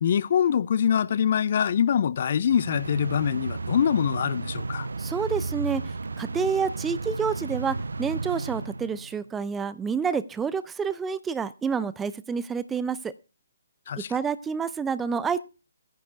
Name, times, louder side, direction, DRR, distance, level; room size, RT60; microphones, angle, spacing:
voice 1, 0.0-4.9 13.9-14.1, left 8 dB, 50° left, 0.5 m, -24 dB
sound 1, 2.5-9.3, right 3 dB, 75° right, 0.5 m, -33 dB
voice 2, 5.0-13.1 14.1-15.4, right 6 dB, 10° right, 0.5 m, -28 dB
10.0 x 5.1 x 8.0 m
figure-of-eight pair, 140°, 0 cm